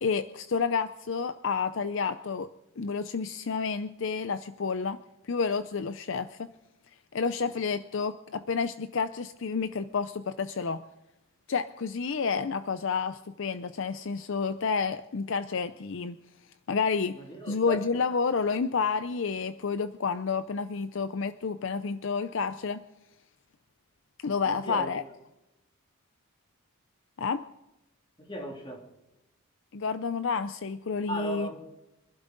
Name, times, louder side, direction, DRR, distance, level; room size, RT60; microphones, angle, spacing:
voice 1, 0.0-2.5 2.8-5.0 5.2-6.5 7.1-10.8 11.5-16.2 16.7-17.2 17.5-22.8 24.2-25.0 27.2-27.4 29.7-31.5, left 5 dB, 60° left, 12 dB, 0.5 m, -30 dB
voice 2, 17.1-18.0 24.4-24.9 28.2-28.9 31.1-31.5, right 1 dB, 25° left, 0 dB, 2.9 m, -37 dB
25.5 x 12.0 x 3.9 m, 0.93 s
head